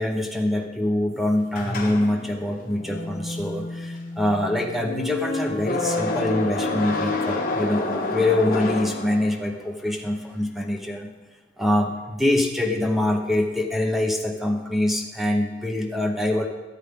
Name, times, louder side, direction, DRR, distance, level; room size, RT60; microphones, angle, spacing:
voice 1, 0.0-11.1 11.6-16.5, left 1 dB, ahead, 3 dB, 0.8 m, -24 dB
sound 1, 1.5-9.6, left 2 dB, 45° left, 1.4 m, -28 dB
13.5 x 8.0 x 3.7 m, 1.2 s
head